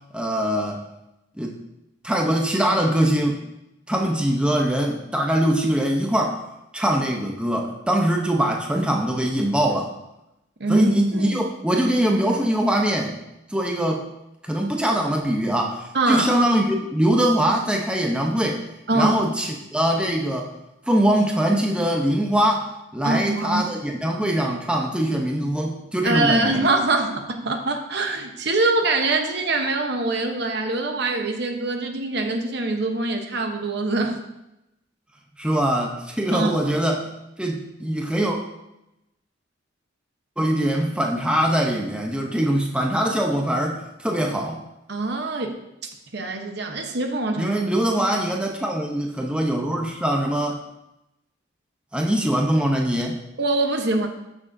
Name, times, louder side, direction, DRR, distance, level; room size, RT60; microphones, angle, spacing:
voice 1, 0.1-0.8 1.4-1.6 2.0-3.4 3.9-6.4 6.7-9.9 10.7-13.2 13.5-14.1 14.4-18.6 18.9-20.5 20.9-26.6 35.4-37.0 37.4-38.4 40.4-44.6 47.4-50.6 51.9-53.2, right 1 dB, 5° right, 0 dB, 0.7 m, -22 dB
voice 2, 10.6-11.4 15.9-16.3 18.9-19.2 23.0-23.6 26.0-34.2 36.3-36.7 44.9-45.5 46.1-47.5 53.4-54.1, right 2 dB, 60° right, 4 dB, 1.0 m, -24 dB
13.0 x 6.2 x 2.7 m, 0.89 s
head